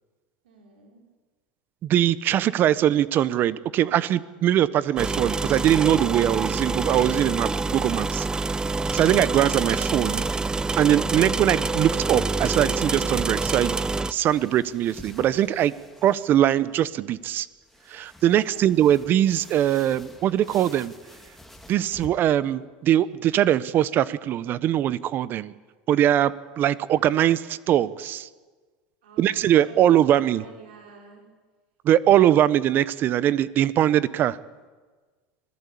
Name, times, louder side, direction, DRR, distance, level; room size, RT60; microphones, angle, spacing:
voice 1, 0.4-1.0 18.3-18.8 29.0-31.2, right 5 dB, 85° right, 1 dB, 5.2 m, -49 dB
voice 2, 1.8-8.4 8.9-10.2 10.8-13.8 14.1-15.7 16.0-17.5 17.9-20.9 21.7-25.5 25.9-28.3 29.2-30.4 31.8-34.4, right 11 dB, 45° right, 17 dB, 1.0 m, -21 dB
sound 1, 5.0-14.1, right 3 dB, 15° right, 0.7 m, -26 dB
sound 2, 9.5-22.1, left 1 dB, 5° left, 2.9 m, -49 dB
25.5 x 17.0 x 8.6 m, 1.4 s
supercardioid pair, 105°, 5 cm